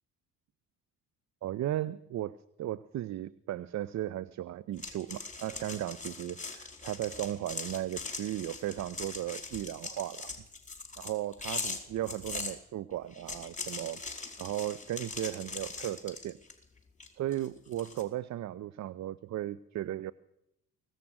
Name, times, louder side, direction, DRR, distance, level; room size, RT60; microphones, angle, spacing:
voice 1, 1.4-10.3 11.0-14.0 14.4-16.4 17.1-20.1, right 13 dB, 35° right, 20 dB, 0.7 m, -36 dB
sound 1, 4.8-12.5 13.1-16.6 17.0-18.0, left 3 dB, 15° left, 4.6 m, -41 dB
24.0 x 17.0 x 6.4 m, 0.81 s
figure-of-eight pair, 50°, 47 cm